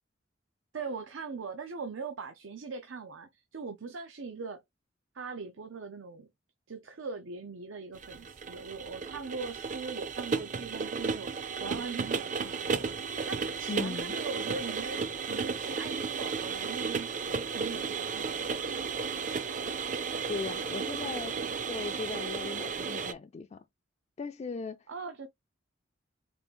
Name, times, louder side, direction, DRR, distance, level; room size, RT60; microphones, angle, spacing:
voice 1, 0.7-4.6 5.1-6.3 6.7-12.9 13.3-15.0 15.3-18.6 24.9-25.3, right 4 dB, 85° right, 0.6 m, -41 dB
sound 1, 8.0-23.1, right 5 dB, 40° right, 0.5 m, -34 dB
voice 2, 13.7-14.1 20.3-21.4 21.7-23.6 24.2-24.8, left 4 dB, 35° left, 0.3 m, -38 dB
4.3 x 2.4 x 3.6 m
head